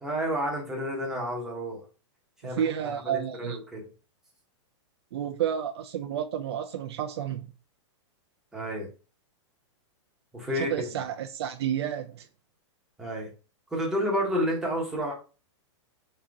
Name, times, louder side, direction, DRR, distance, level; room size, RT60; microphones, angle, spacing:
voice 1, 0.0-1.8 2.4-3.9 8.5-8.9 10.3-10.9 13.0-13.3 13.7-15.1, equal, 5° right, 1.0 m, -30 dB
voice 2, 2.4-3.6 5.1-7.5 10.5-12.3, right 9 dB, 55° right, 0.5 m, -31 dB
3.8 x 2.9 x 4.6 m
supercardioid pair, 170°, 16 cm